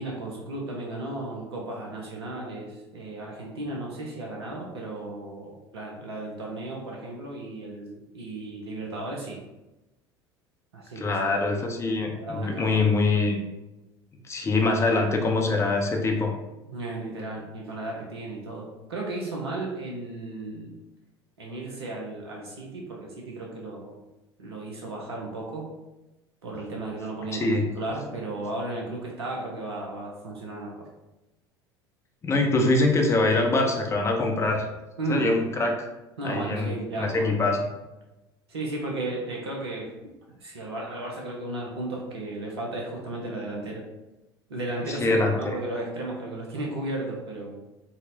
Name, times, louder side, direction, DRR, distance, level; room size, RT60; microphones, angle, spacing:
voice 1, 0.0-9.4 10.7-11.2 11.5-11.6 12.1-12.8 16.6-20.7 21.4-24.0 24.4-25.7 26.4-30.9 35.0-35.3 36.2-37.5 38.5-39.9 40.4-43.8 44.5-47.6, right 2 dB, 75° right, -1 dB, 0.6 m, -34 dB
voice 2, 11.0-13.4 14.3-16.3 27.3-27.7 32.2-34.7 35.1-35.9 36.2-37.6 44.9-45.6, left 2 dB, 20° left, 2 dB, 0.5 m, -24 dB
3.9 x 2.0 x 2.6 m, 1.0 s
figure-of-eight pair, 70°, 14 cm